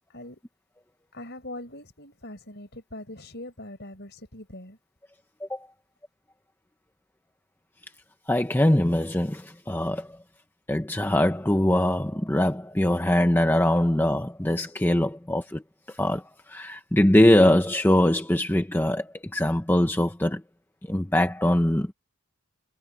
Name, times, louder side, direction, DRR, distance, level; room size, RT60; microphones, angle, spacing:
voice 1, 0.1-0.4 1.1-4.8, left 1 dB, 50° left, 5.0 m, -41 dB
voice 2, 8.3-10.1 10.7-15.6 16.0-16.2 16.5-20.4 20.9-21.9, left 1 dB, 10° left, 0.7 m, -22 dB
head